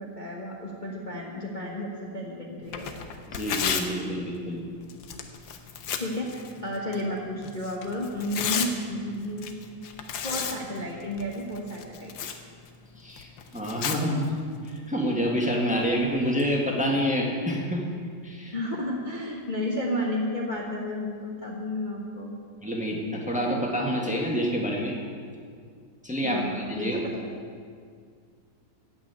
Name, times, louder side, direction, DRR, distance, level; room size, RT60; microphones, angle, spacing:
voice 1, 0.0-2.9 6.0-9.5 10.2-12.1 18.5-22.3 26.2-27.4, left 1 dB, 30° left, -3 dB, 1.3 m, -32 dB
Tearing, 2.6-16.5, left 7 dB, 85° left, 1.7 m, -36 dB
voice 2, 3.3-4.6 13.0-13.3 13.5-14.3 14.7-17.8 18.2-18.5 22.6-24.9 26.0-27.0, equal, 5° right, -1 dB, 1.6 m, -27 dB
14.5 x 6.3 x 9.4 m, 2.1 s
omnidirectional pair, 2.0 m